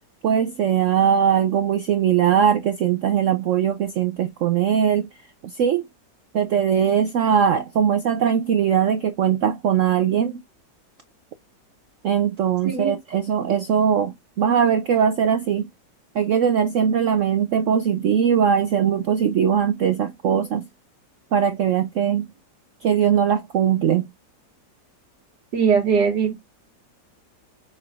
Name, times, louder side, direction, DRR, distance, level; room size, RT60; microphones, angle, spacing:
voice 1, 0.2-5.1 5.4-5.8 6.3-10.4 12.0-15.7 16.1-20.7 21.3-22.3 22.8-24.1, right 8 dB, 80° right, 0.6 m, -20 dB
voice 2, 12.7-13.0 25.5-26.3, right 6 dB, 65° right, 2.1 m, -20 dB
6.7 x 3.2 x 2.3 m
omnidirectional pair, 2.0 m